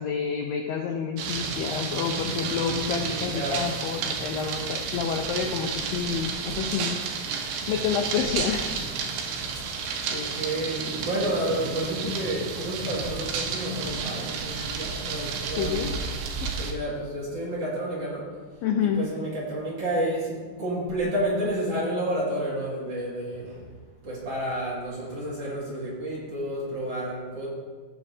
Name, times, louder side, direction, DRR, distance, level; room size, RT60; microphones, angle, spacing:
voice 1, 0.0-7.1 7.7-8.9 15.6-15.9 16.4-16.5 18.6-19.1, left 7 dB, 80° left, 4 dB, 2.0 m, -29 dB
sound 1, 1.2-16.7, right 5 dB, 85° right, 3.0 m, -31 dB
voice 2, 2.4-3.6 10.1-15.8 16.6-18.3 18.8-23.6 24.0-27.5, right 1 dB, 45° right, -7 dB, 2.7 m, -30 dB
16.5 x 7.4 x 2.8 m, 1.5 s
omnidirectional pair, 4.7 m